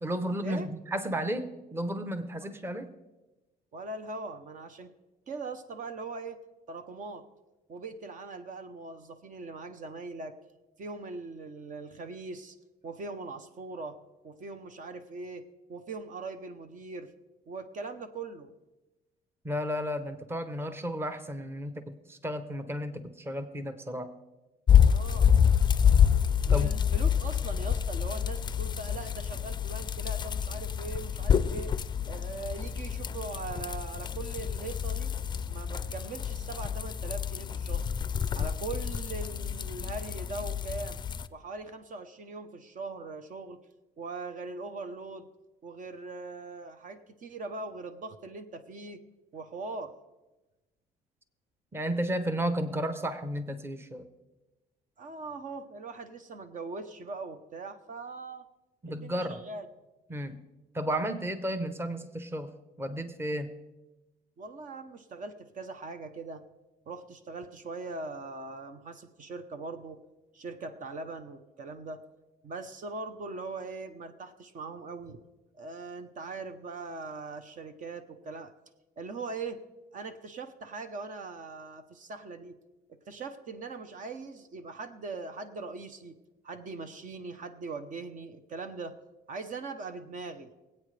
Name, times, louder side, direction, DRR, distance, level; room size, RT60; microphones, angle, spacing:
voice 1, 0.0-2.9 19.4-24.1 26.5-26.7 51.7-54.1 58.8-59.4 60.1-60.4 60.7-62.5 62.8-63.5, equal, 15° right, 9 dB, 0.9 m, -33 dB
voice 2, 3.7-4.9 5.3-6.4 6.7-7.2 7.7-10.3 10.8-12.6 12.8-17.1 17.5-18.5 24.8-25.3 26.5-31.7 32.1-35.1 35.5-37.9 38.3-41.0 41.3-43.6 44.0-45.3 45.6-49.0 49.3-49.9 55.0-58.4 58.9-59.7 64.4-66.4 66.9-70.0 70.3-72.0 72.4-75.2 75.6-78.5 79.0-79.6 79.9-82.6 82.9-86.2 86.4-89.0 89.3-90.5, right 3 dB, 50° right, 9 dB, 1.0 m, -41 dB
sound 1, 24.7-41.3, left 8 dB, 25° left, 0.5 m, -27 dB
23.5 x 8.6 x 3.4 m, 1.1 s
cardioid pair, 110°, 17 cm